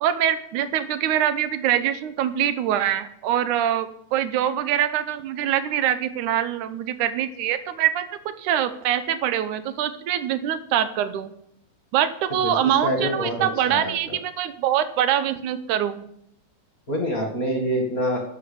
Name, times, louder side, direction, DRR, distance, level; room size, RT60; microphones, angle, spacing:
voice 1, 0.0-11.3 11.9-16.1, right 10 dB, 80° right, 12 dB, 2.3 m, -24 dB
voice 2, 12.4-14.2 16.9-18.2, equal, 30° left, 2 dB, 2.0 m, -26 dB
11.0 x 8.4 x 6.9 m, 0.72 s
omnidirectional pair, 3.5 m